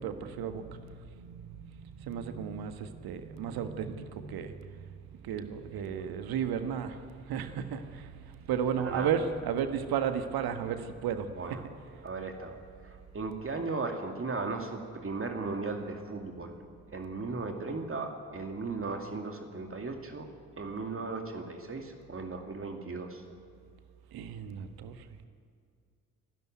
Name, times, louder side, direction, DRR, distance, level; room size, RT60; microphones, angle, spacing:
voice 1, 0.0-4.9 5.2-7.0 7.3-11.6 24.1-25.0, right 8 dB, 55° right, 9 dB, 1.6 m, -34 dB
voice 2, 12.0-12.6 12.8-16.6 16.9-20.3 20.6-23.2, right 3 dB, 30° right, 4 dB, 2.5 m, -36 dB
28.5 x 12.5 x 9.3 m, 2.2 s
figure-of-eight pair, 45°, 44 cm